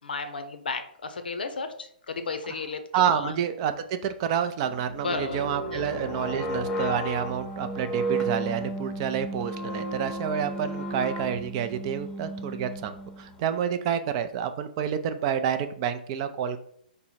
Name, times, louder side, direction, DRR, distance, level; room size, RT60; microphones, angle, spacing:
voice 1, 0.0-2.8 3.1-3.3 5.0-5.9, left 4 dB, 75° left, 8 dB, 0.6 m, -33 dB
voice 2, 2.9-16.6, right 8 dB, 35° right, 10 dB, 0.4 m, -29 dB
sound 1, 4.6-13.4, right 1 dB, 10° left, 0.7 m, -33 dB
4.4 x 2.1 x 4.1 m, 0.65 s
figure-of-eight pair, 120°, 5 cm